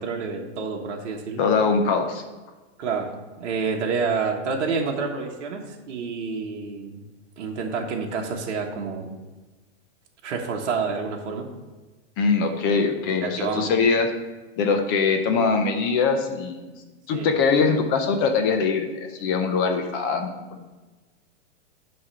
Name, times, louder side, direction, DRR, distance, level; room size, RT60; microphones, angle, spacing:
voice 1, 0.0-1.4 2.8-7.0 7.4-9.1 10.2-11.4 13.2-13.7 17.1-17.3, right 5 dB, 65° right, 1 dB, 1.3 m, -28 dB
voice 2, 1.4-2.2 12.2-14.1 14.6-16.7 17.1-20.7, left 5 dB, 20° left, 5 dB, 0.4 m, -22 dB
9.5 x 3.2 x 6.7 m, 1.2 s
hypercardioid pair, 150°, 36 cm